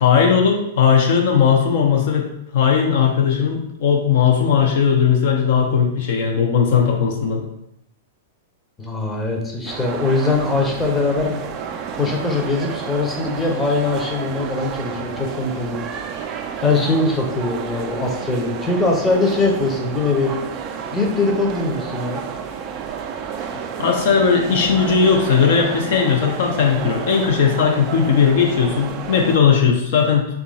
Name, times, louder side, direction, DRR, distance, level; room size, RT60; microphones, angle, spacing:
voice 1, 0.0-2.3 2.5-7.4 23.8-30.3, left 7 dB, 55° left, 1 dB, 0.5 m, -17 dB
voice 2, 8.8-11.4 11.9-16.0 16.6-20.3 20.9-22.2, left 3 dB, 10° left, 0 dB, 0.7 m, -21 dB
sound 1, 9.7-29.4, right 7 dB, 35° right, 0.3 m, -30 dB
2.9 x 2.4 x 3.9 m, 0.81 s
figure-of-eight pair, 100°, 0 cm